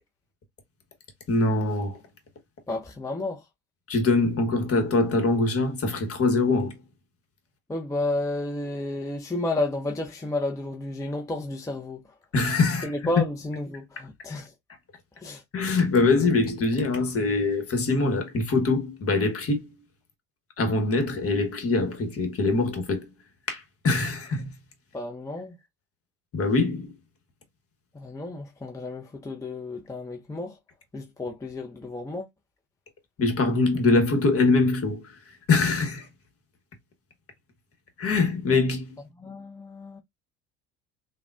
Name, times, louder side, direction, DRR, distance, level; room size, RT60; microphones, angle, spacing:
voice 1, 1.3-2.0 3.9-6.8 12.3-12.9 15.5-19.7 20.6-23.1 23.5-24.5 26.3-26.9 33.2-35.1 35.5-36.1 38.0-39.0, left 3 dB, 40° left, 1.2 m, -23 dB
voice 2, 2.7-3.4 7.7-12.0 12.8-14.5 15.2-15.4 24.9-25.5 27.9-30.6 30.9-32.3 39.2-40.0, left 2 dB, 10° left, 0.5 m, -31 dB
3.4 x 2.2 x 2.4 m
hypercardioid pair, 75°, 38 cm